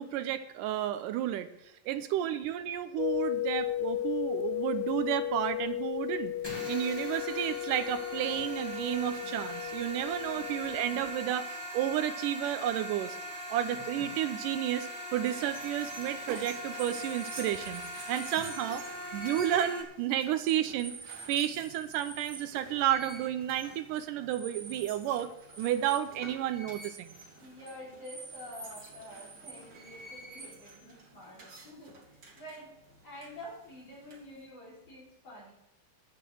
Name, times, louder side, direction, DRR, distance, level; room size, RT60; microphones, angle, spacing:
voice 1, 0.0-1.5 1.9-6.3 6.7-13.2 13.5-17.8 18.1-18.8 19.1-21.0 21.3-25.3 25.6-27.1, right 11 dB, 80° right, 10 dB, 2.2 m, -31 dB
sound 1, 3.0-11.2, left 13 dB, 80° left, 1.5 m, -35 dB
sound 2, 6.4-19.8, equal, 10° left, 1.4 m, -41 dB
voice 2, 10.2-10.6 16.9-17.0 18.5-18.9 27.4-32.8 33.0-35.5, left 1 dB, 45° left, -5 dB, 5.4 m, -48 dB
sound 3, 15.2-34.5, right 3 dB, 30° right, 2.7 m, -48 dB
11.0 x 8.4 x 7.7 m, 0.85 s
omnidirectional pair, 3.9 m